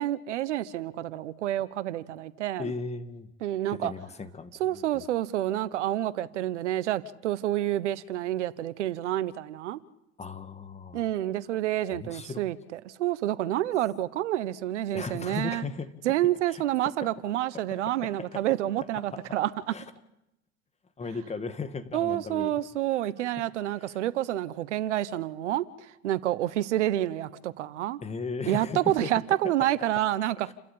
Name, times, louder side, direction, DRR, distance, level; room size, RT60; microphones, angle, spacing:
voice 1, 0.0-2.7 3.4-3.9 4.6-9.8 10.9-15.6 16.0-19.7 21.9-28.0 28.4-30.5, right 13 dB, 85° right, 1.2 m, -28 dB
voice 2, 2.6-3.3 3.7-5.0 10.2-11.0 11.9-12.5 14.9-15.9 16.5-16.9 18.0-18.4 18.9-19.2 19.7-19.8 21.0-22.5 23.8-24.0 28.0-29.1 30.5-30.6, left 4 dB, 20° left, 2.1 m, -37 dB
30.0 x 13.0 x 8.7 m
supercardioid pair, 105°, 35 cm